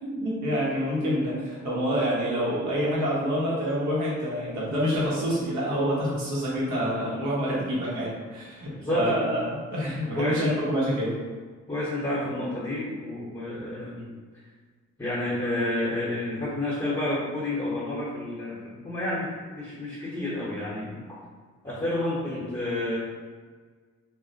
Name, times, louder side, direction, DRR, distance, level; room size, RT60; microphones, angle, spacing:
voice 1, 0.0-11.2, equal, 75° right, -7 dB, 1.2 m, -27 dB
voice 2, 8.8-9.2 10.1-10.6 11.7-14.1 15.0-21.0 21.6-23.0, left 1 dB, 10° left, -8 dB, 0.9 m, -30 dB
2.4 x 2.1 x 3.9 m, 1.5 s
cardioid pair, 90°, 30 cm